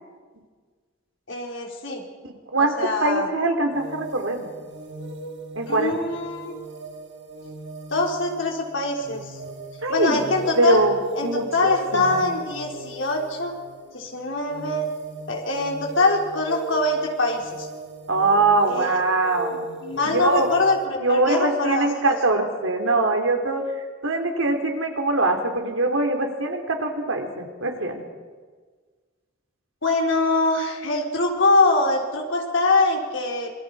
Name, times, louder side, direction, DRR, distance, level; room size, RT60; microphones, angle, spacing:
voice 1, 1.3-2.0 2.6-3.3 5.7-6.6 7.9-9.3 9.9-10.8 11.2-13.5 13.9-14.9 15.3-17.7 18.7-19.0 19.8-22.1 29.8-33.5, left 2 dB, 65° left, 1 dB, 4.0 m, -23 dB
voice 2, 2.2-2.7 3.0-4.5 5.5-5.9 9.8-10.2 10.6-12.3 18.1-19.8 20.0-20.5 21.0-23.6 24.0-28.0, right 2 dB, 75° right, 4 dB, 3.2 m, -23 dB
sound 1, 3.7-20.9, right 2 dB, 55° right, 1.8 m, -38 dB
26.5 x 23.5 x 4.9 m, 1.5 s
head